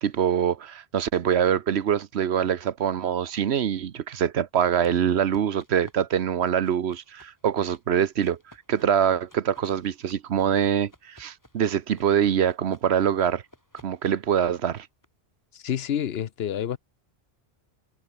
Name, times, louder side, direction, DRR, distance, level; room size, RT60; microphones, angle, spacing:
voice 1, 0.0-8.4 8.7-13.4 13.8-14.9, right 9 dB, 80° right, 1.1 m, -24 dB
sound 1, 4.6-15.1, equal, 15° left, 6.6 m, -56 dB
voice 2, 15.5-16.8, left 9 dB, 70° left, 1.0 m, -28 dB
omnidirectional pair, 1.1 m